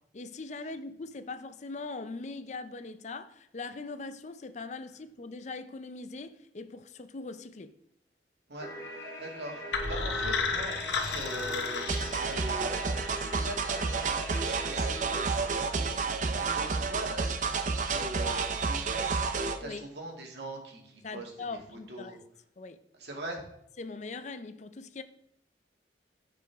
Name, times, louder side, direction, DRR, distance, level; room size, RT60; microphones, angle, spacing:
voice 1, 0.1-7.8 19.6-19.8 21.0-22.2 22.6-22.8 23.8-25.0, left 3 dB, 40° left, 0.5 m, -41 dB
sound 1, 8.6-15.3, equal, 20° left, 2.2 m, -41 dB
voice 2, 9.2-21.3 21.7-22.2 23.0-23.4, right 1 dB, 70° right, 2.2 m, -42 dB
sound 2, 9.7-12.7, left 4 dB, 85° left, 1.1 m, -32 dB
sound 3, 11.9-19.6, right 4 dB, 45° right, 0.6 m, -30 dB
15.0 x 5.1 x 3.5 m
head